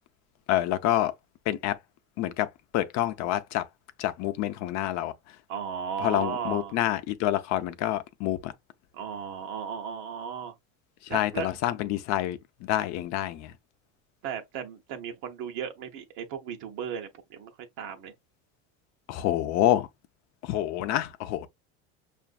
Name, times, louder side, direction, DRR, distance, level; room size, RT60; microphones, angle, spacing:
voice 1, 0.5-1.1 1.5-1.8 2.2-2.5 2.7-3.6 4.0-5.1 6.0-8.5 11.1-13.5 19.1-19.9 20.4-21.5, left 13 dB, 55° left, 0.6 m, -27 dB
voice 2, 5.5-6.8 8.9-10.5 11.1-11.5 14.2-17.5 17.8-18.1, right 7 dB, 65° right, 0.8 m, -35 dB
5.8 x 2.5 x 2.3 m
cardioid pair, 140°, 33 cm